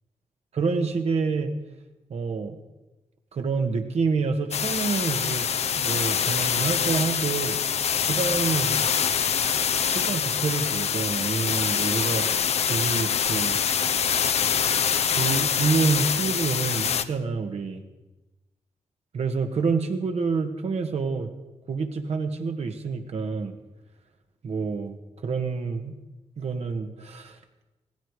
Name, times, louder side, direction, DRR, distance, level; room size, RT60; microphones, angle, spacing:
voice 1, 0.5-1.5 2.1-2.6 3.3-7.6 8.1-8.9 9.9-12.3 12.7-13.6 15.2-17.8 19.1-21.3 21.7-23.5 24.4-25.9 26.4-27.4, right 4 dB, 65° right, 5 dB, 1.8 m, -27 dB
sound 1, 4.5-17.0, left 7 dB, 65° left, 0.8 m, -25 dB
17.0 x 15.5 x 4.9 m, 1.1 s
cardioid pair, 85°, 11 cm